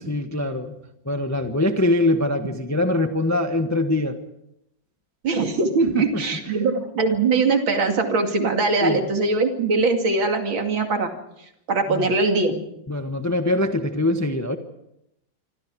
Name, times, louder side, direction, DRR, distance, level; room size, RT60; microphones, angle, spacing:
voice 1, 0.1-0.7 1.0-4.2 5.9-6.2 6.5-6.7 8.8-9.1 11.9-12.1 12.9-14.6, left 1 dB, 10° left, 6 dB, 1.2 m, -23 dB
voice 2, 5.2-11.1 11.7-12.6, right 3 dB, 90° right, 4 dB, 3.2 m, -21 dB
26.5 x 26.0 x 4.8 m, 0.81 s
omnidirectional pair, 2.1 m